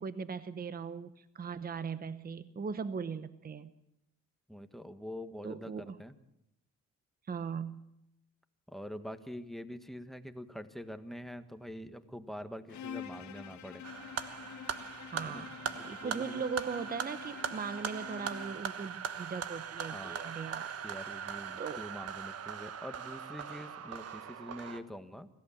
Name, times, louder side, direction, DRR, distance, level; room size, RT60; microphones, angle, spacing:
voice 1, 0.0-3.7 5.4-6.0 7.3-7.8 15.1-20.7 21.6-21.8, right 6 dB, 30° right, 13 dB, 0.9 m, -39 dB
voice 2, 4.5-6.1 8.7-13.8 15.2-16.4 19.9-20.2 20.8-25.3, equal, ahead, 11 dB, 1.4 m, -45 dB
Bowed string instrument, 12.7-18.7, left 9 dB, 70° left, 1.4 m, -47 dB
sound 1, 13.8-24.8, right 7 dB, 55° right, 1.4 m, -40 dB
25.5 x 15.0 x 7.2 m, 0.84 s
cardioid pair, 90°, 30 cm